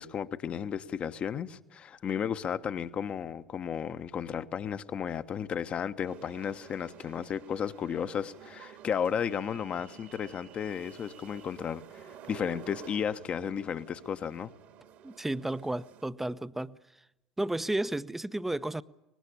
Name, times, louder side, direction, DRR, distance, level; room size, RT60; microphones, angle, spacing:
voice 1, 0.0-14.5, left 8 dB, 40° left, 1.2 m, -34 dB
sound 1, 6.0-16.1, right 8 dB, 55° right, 2.2 m, -51 dB
voice 2, 15.0-16.8 17.4-18.8, right 1 dB, 10° right, 0.9 m, -32 dB
24.0 x 20.5 x 8.4 m
figure-of-eight pair, 65°, 3 cm